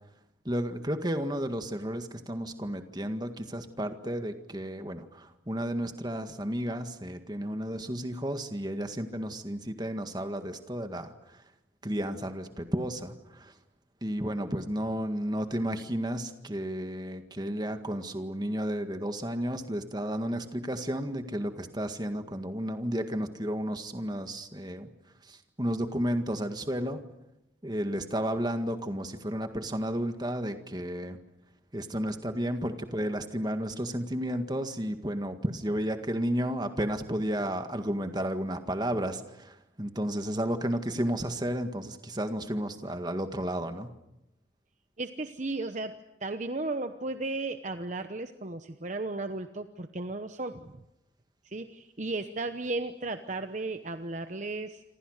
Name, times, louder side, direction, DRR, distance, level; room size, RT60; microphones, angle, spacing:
voice 1, 0.5-11.4 11.8-13.5 14.0-24.9 25.2-27.0 27.6-31.2 31.7-43.9, equal, 20° right, 7 dB, 1.8 m, -32 dB
voice 2, 45.0-50.8 51.4-54.8, right 2 dB, 40° right, 8 dB, 1.0 m, -35 dB
28.0 x 26.0 x 6.6 m, 0.89 s
head